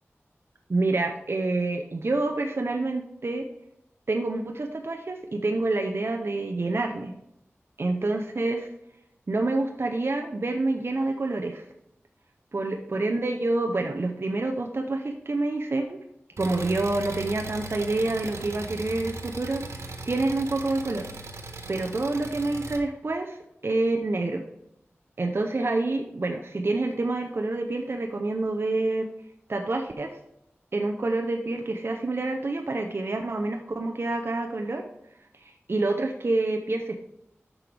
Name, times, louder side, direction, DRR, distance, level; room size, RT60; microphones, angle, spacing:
voice 1, 0.7-3.5 4.1-7.1 7.8-8.7 9.3-11.6 12.5-16.0 16.4-21.1 21.7-23.4 23.6-24.4 25.2-29.1 29.5-30.2 30.7-34.8 35.4-36.9, right 2 dB, 55° right, 3 dB, 0.7 m, -27 dB
Engine, 16.4-22.8, right 3 dB, 85° right, 0.9 m, -38 dB
8.9 x 6.1 x 3.4 m, 0.81 s
wide cardioid pair, 70°, 5 cm